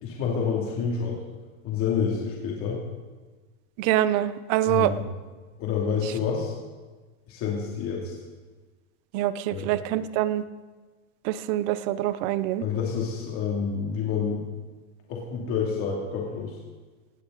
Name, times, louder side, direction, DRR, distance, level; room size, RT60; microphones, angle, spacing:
voice 1, 0.0-1.2 1.6-2.8 4.6-5.0 5.6-6.5 7.3-8.1 9.5-9.7 12.6-14.4 15.1-16.6, left 6 dB, 30° left, -2 dB, 2.7 m, -28 dB
voice 2, 3.8-4.9 9.1-10.4 11.2-12.6, right 13 dB, 30° right, 14 dB, 0.6 m, -25 dB
17.5 x 17.5 x 4.0 m, 1.3 s
supercardioid pair, 160°, 41 cm